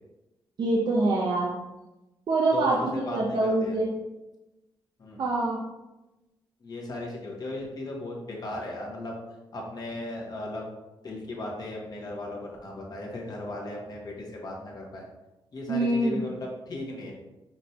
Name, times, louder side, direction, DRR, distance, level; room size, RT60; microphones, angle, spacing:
voice 1, 0.6-1.5 2.3-3.9 5.2-5.6 15.7-16.2, right 2 dB, 55° right, -2 dB, 0.7 m, -25 dB
voice 2, 2.5-3.8 5.0-5.2 6.6-9.1 9.5-10.7 11.0-15.0 15.5-17.1, left 2 dB, 50° left, -2 dB, 1.2 m, -36 dB
5.2 x 3.2 x 2.8 m, 1.0 s
cardioid pair, 100°, 9 cm